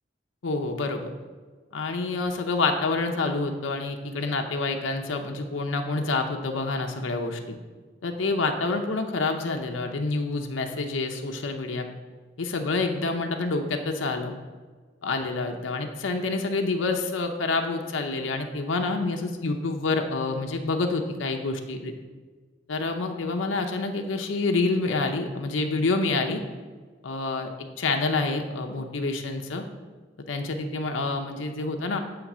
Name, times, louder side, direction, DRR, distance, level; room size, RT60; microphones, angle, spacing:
voice 1, 0.4-1.0 1.7-7.6 8.0-11.9 12.4-14.3 15.0-21.9 22.7-26.4 27.0-29.6 30.3-32.0, left 3 dB, 90° left, 4 dB, 0.6 m, -27 dB
8.3 x 3.2 x 6.0 m, 1.4 s
head